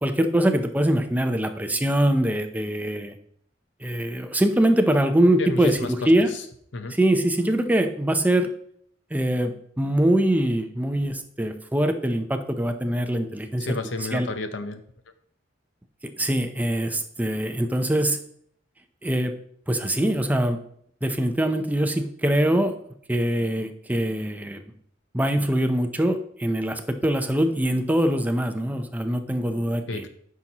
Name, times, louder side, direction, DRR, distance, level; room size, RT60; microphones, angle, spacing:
voice 1, 0.0-3.2 3.8-6.3 6.9-8.5 9.1-13.7 14.0-14.3 16.2-18.2 19.0-19.3 19.7-20.6 21.0-22.8 23.1-24.6 25.1-30.0, right 1 dB, 10° right, 7 dB, 0.6 m, -23 dB
voice 2, 5.4-5.9 6.7-7.0 13.6-14.8 29.9-30.1, left 3 dB, 70° left, 9 dB, 0.8 m, -31 dB
9.4 x 6.0 x 2.9 m, 0.65 s
head